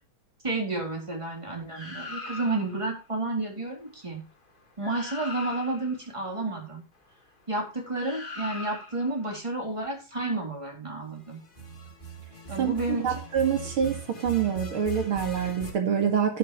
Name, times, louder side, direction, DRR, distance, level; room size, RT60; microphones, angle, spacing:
voice 1, 0.4-4.2 4.8-6.8 7.5-11.4 12.5-13.2, right 2 dB, 15° right, 4.0 m, -31 dB
sound 1, 1.7-2.8 4.5-4.6 4.8-6.0 7.9-9.1 11.4-15.7, right 2 dB, 25° left, 2.2 m, -40 dB
voice 2, 13.0-16.4, right 7 dB, 75° right, 2.9 m, -26 dB
11.0 x 11.0 x 3.2 m
omnidirectional pair, 2.3 m